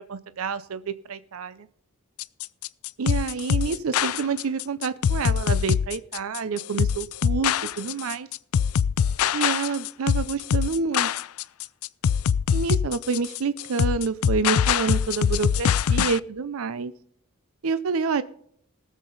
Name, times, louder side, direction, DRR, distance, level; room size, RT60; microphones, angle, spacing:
voice 1, 0.1-1.7 3.0-8.3 9.3-11.1 12.5-16.9 17.6-18.2, right 5 dB, 70° right, 14 dB, 0.5 m, -28 dB
sound 1, 2.2-16.2, left 7 dB, 75° left, 0.4 m, -23 dB
19.0 x 7.4 x 4.0 m, 0.65 s
head